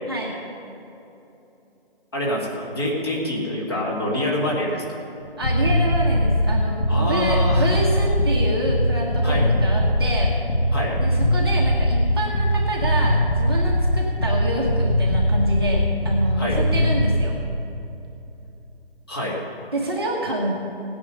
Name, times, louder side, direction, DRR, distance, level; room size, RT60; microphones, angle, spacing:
voice 1, 2.1-4.8 6.9-7.7 9.2-9.4 10.7-10.9 16.4-16.6 19.1-19.4, left 1 dB, 25° left, -4 dB, 1.9 m, -25 dB
sound 1, 5.2-17.3, equal, 60° left, 2.6 m, -20 dB
voice 2, 5.4-10.3 11.0-17.4 19.7-20.5, right 1 dB, 25° right, -3 dB, 1.2 m, -27 dB
17.0 x 10.0 x 5.4 m, 2.9 s
figure-of-eight pair, 170°, 31 cm